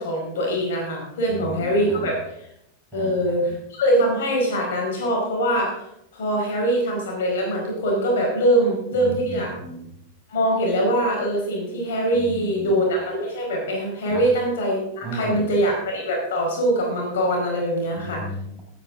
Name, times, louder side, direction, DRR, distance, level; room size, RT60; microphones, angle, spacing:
voice 1, 0.0-2.2 2.9-9.5 10.3-18.2, right 1 dB, 60° left, 0 dB, 4.8 m, -23 dB
voice 2, 1.2-2.1 2.9-3.5 9.0-9.9 12.1-12.8 14.1-14.3 15.0-15.6 17.9-18.6, right 1 dB, 15° right, -2 dB, 5.2 m, -35 dB
16.5 x 9.6 x 3.8 m, 0.77 s
figure-of-eight pair, 90°, 0 cm